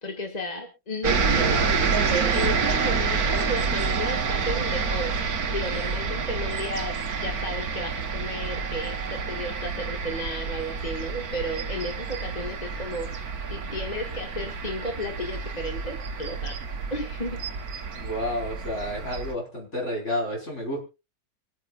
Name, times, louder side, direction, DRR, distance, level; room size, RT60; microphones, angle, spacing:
voice 1, 0.0-5.1 5.5-17.4, left 1 dB, 30° left, 2 dB, 1.8 m, -33 dB
sound 1, 1.0-19.3, right 5 dB, 85° right, 1.7 m, -28 dB
voice 2, 17.9-20.8, left 1 dB, 50° left, 0 dB, 5.0 m, -30 dB
25.0 x 9.1 x 2.4 m, 0.28 s
omnidirectional pair, 1.5 m